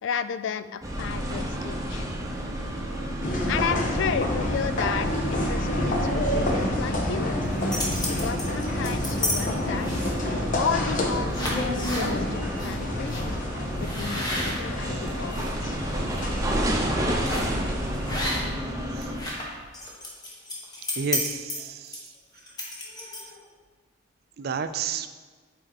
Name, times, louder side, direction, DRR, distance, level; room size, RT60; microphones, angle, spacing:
voice 1, 0.0-2.0 3.5-7.4 8.1-9.9 10.5-13.4 13.8-15.8, left 6 dB, 70° left, 13 dB, 0.3 m, -33 dB
sound 1, 0.8-19.2, equal, 15° right, 0.8 m, -31 dB
sound 2, 3.2-18.5, left 1 dB, 45° left, 0.9 m, -29 dB
sound 3, 7.4-9.4 9.8-10.3 10.9-11.0 11.3-12.1 12.6-12.7 13.1-13.2 13.8-15.5 15.9-16.2 17.2-17.6 18.1-18.7 18.9-23.4, left 1 dB, 20° left, 1.1 m, -32 dB
voice 2, 21.0-22.0 24.4-25.1, right 6 dB, 55° right, 10 dB, 0.4 m, -31 dB
7.5 x 4.5 x 4.0 m, 1.4 s
head